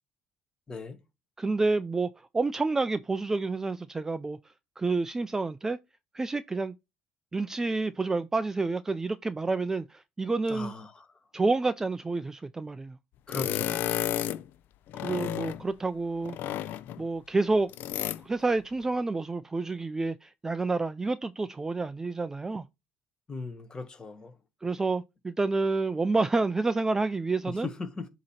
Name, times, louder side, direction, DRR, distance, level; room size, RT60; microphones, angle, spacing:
voice 1, 0.7-1.0 10.5-11.1 13.3-14.2 23.3-24.3 27.5-28.1, left 4 dB, 20° left, 1.2 m, -38 dB
voice 2, 1.4-4.4 4.8-5.8 6.1-6.7 7.3-10.7 11.3-13.0 15.0-16.4 16.6-17.7 18.2-22.7 24.6-27.7, right 3 dB, 10° right, 0.3 m, -29 dB
sound 1, 13.3-14.5 14.9-15.7 16.2-17.0 17.7-18.2, left 12 dB, 60° left, 0.5 m, -32 dB
7.8 x 2.9 x 5.5 m
cardioid pair, 140°, 4 cm